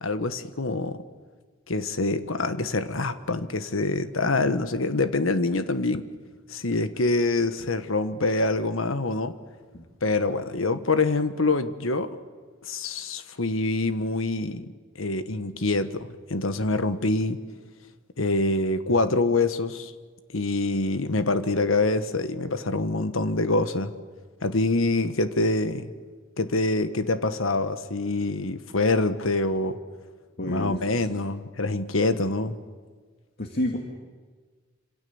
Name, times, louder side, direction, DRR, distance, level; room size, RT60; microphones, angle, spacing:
voice 1, 0.0-1.0 1.7-6.1 6.5-9.3 10.0-12.2 12.6-14.6 15.0-17.4 18.2-19.9 20.3-23.9 24.4-25.9 26.4-29.8 30.5-32.6, left 2 dB, 80° left, 11 dB, 1.4 m, -25 dB
voice 2, 30.4-30.8 33.4-33.8, left 1 dB, 50° left, 3 dB, 2.2 m, -29 dB
27.0 x 26.5 x 7.1 m, 1.5 s
head